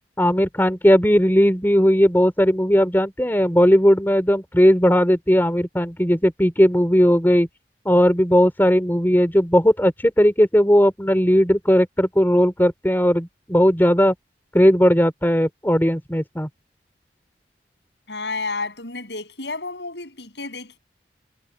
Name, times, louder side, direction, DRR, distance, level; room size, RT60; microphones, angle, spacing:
voice 1, 0.2-7.5 7.9-14.1 14.5-16.5, equal, 10° left, 3.9 m, -17 dB
voice 2, 18.1-20.8, left 3 dB, 80° left, 7.8 m, -31 dB
head